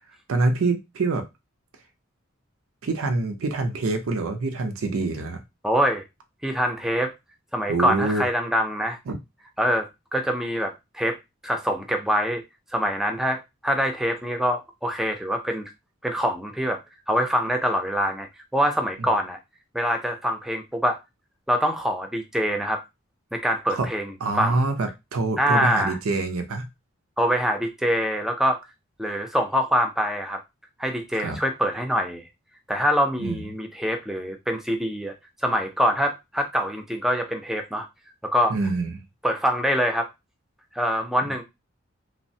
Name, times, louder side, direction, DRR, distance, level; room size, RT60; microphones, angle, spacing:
voice 1, 0.3-1.3 2.8-5.4 7.7-8.2 9.1-9.2 19.0-19.1 23.7-23.9 24.2-26.7 31.1-31.4 33.2-33.4 38.5-39.0, right 3 dB, 85° right, 6 dB, 0.5 m, -25 dB
voice 2, 5.6-6.0 6.4-7.1 7.5-9.0 9.6-11.2 11.4-12.4 12.7-15.6 16.0-16.8 17.1-19.4 19.7-21.0 21.5-22.8 23.3-24.6 25.4-26.0 27.2-28.6 29.0-30.4 30.8-32.3 32.7-35.1 35.4-37.9 38.2-38.6 39.2-40.1 40.7-41.4, equal, ahead, 4 dB, 0.3 m, -24 dB
3.0 x 2.0 x 2.6 m, 0.22 s
head